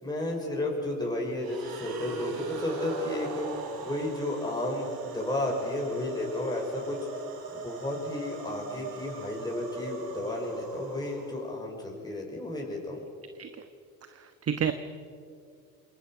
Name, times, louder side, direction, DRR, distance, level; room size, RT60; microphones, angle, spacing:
voice 1, 0.0-3.5 3.8-7.1 7.5-13.0, left 1 dB, 10° left, -1 dB, 5.5 m, -33 dB
sound 1, 1.4-11.6, right 3 dB, 55° right, 4.8 m, -39 dB
voice 2, 14.1-14.7, right 8 dB, 35° right, 9 dB, 1.2 m, -31 dB
27.5 x 20.5 x 6.2 m, 2.3 s
hypercardioid pair, 70°, 42 cm